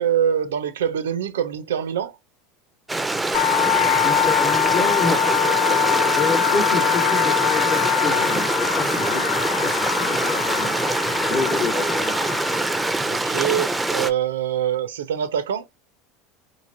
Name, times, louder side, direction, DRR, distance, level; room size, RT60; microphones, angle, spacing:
voice 1, 0.0-2.1 13.0-15.7, right 9 dB, 85° right, 0.4 m, -24 dB
Stream, 2.9-14.1, right 2 dB, 10° right, 0.4 m, -24 dB
sound 1, 3.3-13.1, left 11 dB, 65° left, 0.4 m, -23 dB
voice 2, 4.0-5.2 6.1-12.4, left 4 dB, 40° left, 0.9 m, -29 dB
3.0 x 2.5 x 2.5 m
hypercardioid pair, 90°, 0 cm